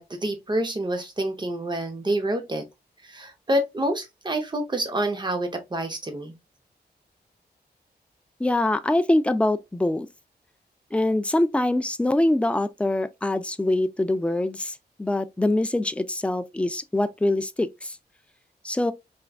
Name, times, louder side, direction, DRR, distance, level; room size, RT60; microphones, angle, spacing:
voice 1, 0.0-2.7 3.0-6.3, right 1 dB, 25° right, 0.8 m, -27 dB
voice 2, 8.4-10.1 10.9-18.0 18.6-18.9, left 1 dB, 5° left, 0.3 m, -24 dB
3.4 x 2.4 x 2.3 m
wide cardioid pair, 100°, 18 cm